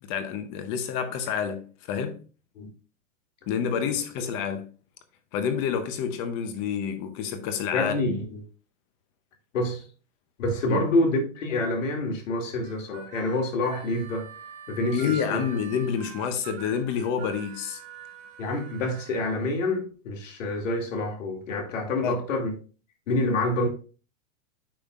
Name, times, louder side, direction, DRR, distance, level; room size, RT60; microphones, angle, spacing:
voice 1, 0.0-2.2 3.5-4.7 5.3-8.2 10.7-10.9 14.9-17.8 22.0-22.2, left 7 dB, 25° left, 0.7 m, -28 dB
voice 2, 7.7-8.4 9.5-9.8 10.4-14.3 14.7-15.4 18.4-22.5 23.1-23.7, left 2 dB, 85° left, 2.4 m, -27 dB
Harmonica, 12.6-19.2, right 7 dB, 20° right, 0.8 m, -44 dB
8.6 x 5.5 x 2.4 m
supercardioid pair, 170°, 38 cm